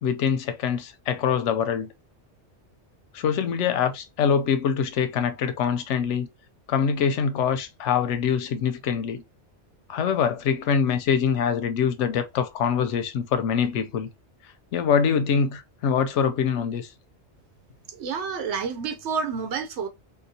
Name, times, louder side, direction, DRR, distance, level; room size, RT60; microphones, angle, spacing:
voice 1, 0.0-1.9 3.1-6.3 6.7-9.2 9.9-14.1 14.7-16.9, left 7 dB, 90° left, 0.9 m, -24 dB
voice 2, 17.9-19.9, right 6 dB, 80° right, 1.0 m, -29 dB
3.8 x 2.3 x 2.7 m
omnidirectional pair, 1.2 m